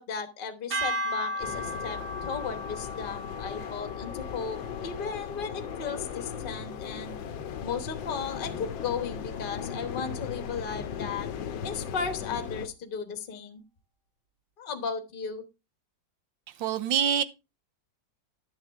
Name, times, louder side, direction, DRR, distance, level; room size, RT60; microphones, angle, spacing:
voice 1, 0.0-7.2 7.6-11.3 11.6-13.6 14.6-15.4, left 5 dB, 35° left, 1.0 m, -35 dB
sound 1, 0.7-7.0, equal, 60° right, 1.9 m, -37 dB
sound 2, 1.4-12.7, left 8 dB, 80° left, 1.5 m, -37 dB
voice 2, 16.6-17.2, right 8 dB, 80° right, 1.4 m, -25 dB
11.0 x 7.4 x 3.4 m
omnidirectional pair, 2.1 m